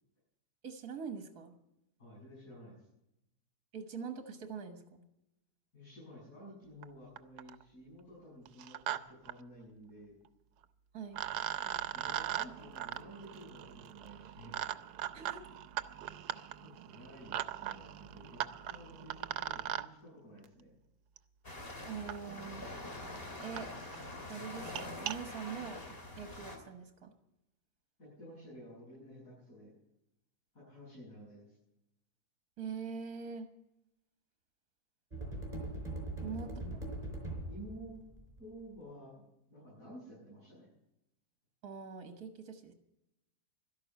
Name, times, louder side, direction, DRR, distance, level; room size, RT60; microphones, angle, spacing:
voice 1, 0.6-1.5 3.7-5.0 10.9-11.2 15.1-15.5 21.8-22.7 23.4-23.7 24.3-25.8 26.2-27.1 32.6-33.5 36.2-36.5 41.6-42.7, right 6 dB, 70° right, 6 dB, 1.8 m, -43 dB
voice 2, 2.0-2.9 5.7-10.2 11.6-14.5 16.6-20.8 28.0-29.7 30.5-31.5 36.2-36.7 37.5-38.0 38.4-40.7, equal, 60° left, -9 dB, 8.0 m, -52 dB
sound 1, 6.8-6.9 7.2-7.6 8.5-9.0 9.3-9.4 10.6-10.7 11.1-19.9 21.2-21.3 22.1-22.2 22.8-22.9 23.2-23.3 23.6-23.7 23.9-24.1 24.6-25.2, right 12 dB, 90° right, 1.3 m, -39 dB
sound 2, 21.4-26.6, left 1 dB, 35° left, 2.9 m, -45 dB
sound 3, 35.1-38.5, right 1 dB, 25° right, 4.7 m, -41 dB
13.0 x 11.5 x 8.1 m, 0.87 s
omnidirectional pair, 1.6 m